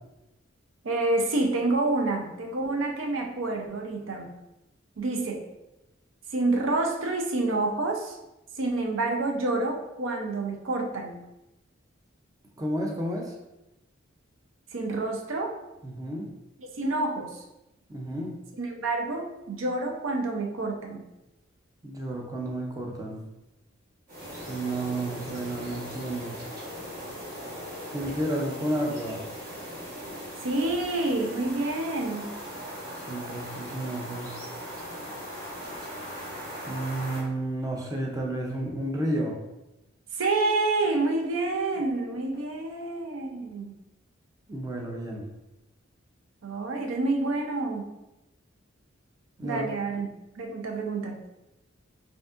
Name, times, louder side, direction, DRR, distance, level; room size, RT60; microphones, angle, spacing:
voice 1, 0.8-4.3 5.0-5.4 6.3-8.2 8.6-11.2 14.7-15.6 16.6-17.4 18.6-21.0 30.4-32.3 40.1-43.8 46.4-47.9 49.4-50.1 50.4-51.2, right 2 dB, 80° right, 3 dB, 0.6 m, -28 dB
voice 2, 12.6-13.3 15.8-16.3 17.9-18.4 21.8-23.2 24.5-26.4 27.9-29.2 32.9-34.4 36.7-39.4 44.5-45.3 49.4-49.6, right 1 dB, 20° right, 0 dB, 0.5 m, -31 dB
sound 1, 24.1-37.2, equal, 50° right, 1.3 m, -39 dB
4.9 x 2.7 x 2.4 m, 0.94 s
head